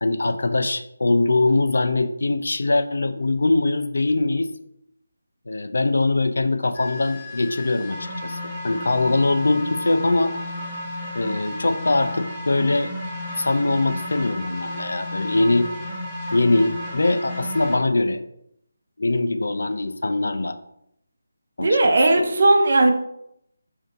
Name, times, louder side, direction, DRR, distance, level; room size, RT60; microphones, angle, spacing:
voice 1, 0.0-4.5 5.5-8.4 8.6-10.3 11.1-12.9 13.4-15.7 16.3-18.2 19.0-20.6 21.6-22.3, left 2 dB, 75° left, 9 dB, 0.4 m, -22 dB
sound 1, 6.7-17.8, left 1 dB, 10° left, 0.8 m, -33 dB
voice 2, 21.6-22.9, right 2 dB, 50° right, 4 dB, 0.7 m, -17 dB
3.5 x 2.6 x 3.7 m, 0.77 s
figure-of-eight pair, 170°, 0 cm